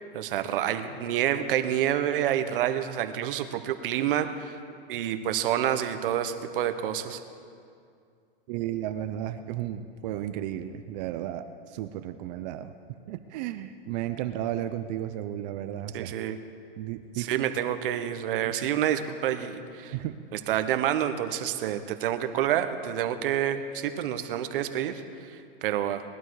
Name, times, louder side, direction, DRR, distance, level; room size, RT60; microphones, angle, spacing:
voice 1, 0.1-4.6 4.9-7.2 15.9-16.4 17.2-19.9 20.3-26.0, right 10 dB, 65° right, 9 dB, 1.2 m, -28 dB
voice 2, 8.5-12.7 13.1-16.1 16.8-17.5 18.4-18.5 19.9-20.2, right 12 dB, 45° right, 9 dB, 0.7 m, -34 dB
20.0 x 11.5 x 4.8 m, 2.4 s
hypercardioid pair, 135°, 29 cm